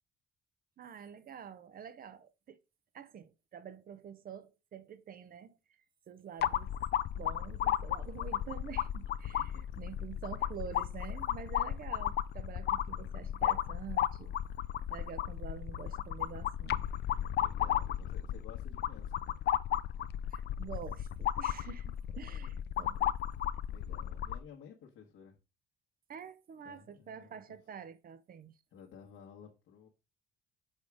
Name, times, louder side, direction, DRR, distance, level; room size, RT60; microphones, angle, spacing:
voice 1, 0.8-2.6 2.9-5.6 6.1-6.7 7.1-14.4 14.9-16.9 20.3-23.0 26.1-28.5, right 7 dB, 50° right, 0.6 m, -47 dB
sound 1, 6.4-24.4, left 11 dB, 60° left, 0.4 m, -34 dB
voice 2, 17.4-19.2 22.5-22.6 23.0-23.1 23.7-25.3 26.6-27.4 28.7-29.9, left 7 dB, 85° left, 1.4 m, -54 dB
6.5 x 3.4 x 4.8 m
cardioid pair, 115°, 20 cm